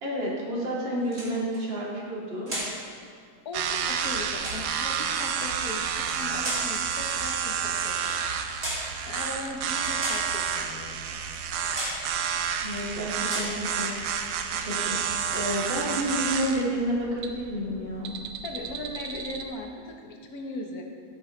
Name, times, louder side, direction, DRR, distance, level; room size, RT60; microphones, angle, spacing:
voice 1, 0.0-2.5 12.6-18.1, equal, 65° right, -4 dB, 2.9 m, -30 dB
sound 1, 1.0-1.6 2.5-2.8 3.8-4.7 5.9-6.7 7.7-7.9 8.6-8.9 9.7-10.3 11.2-11.4 11.7-12.1 12.6-12.9 13.2-13.6, right 1 dB, 35° right, 3.0 m, -35 dB
voice 2, 3.4-8.3 9.1-11.3 18.4-20.8, left 2 dB, 50° left, 2 dB, 1.5 m, -38 dB
sound 2, 3.5-19.4, right 7 dB, 85° right, 1.6 m, -30 dB
13.5 x 11.0 x 3.3 m, 2.2 s
omnidirectional pair, 2.3 m